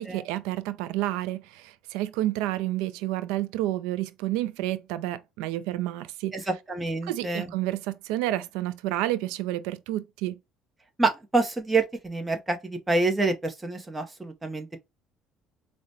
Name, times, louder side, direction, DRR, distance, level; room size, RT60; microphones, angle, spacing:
voice 1, 0.0-6.5 7.0-10.4, right 15 dB, 90° right, 0.4 m, -30 dB
voice 2, 6.3-7.5 11.0-14.8, right 3 dB, 10° right, 0.8 m, -27 dB
4.9 x 2.1 x 2.6 m
cardioid pair, 120°, 0 cm